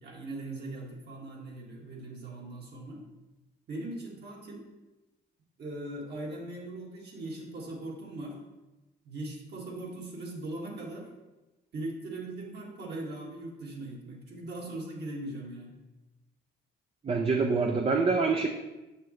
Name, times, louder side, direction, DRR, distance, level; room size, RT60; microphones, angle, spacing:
voice 1, 0.0-3.0 3.7-4.6 5.6-8.4 9.0-11.1 11.7-15.7, right 2 dB, 55° right, -2 dB, 1.7 m, -40 dB
voice 2, 17.0-18.5, right 4 dB, 30° right, 3 dB, 0.5 m, -25 dB
6.6 x 6.1 x 3.1 m, 1.1 s
cardioid pair, 90°, 20 cm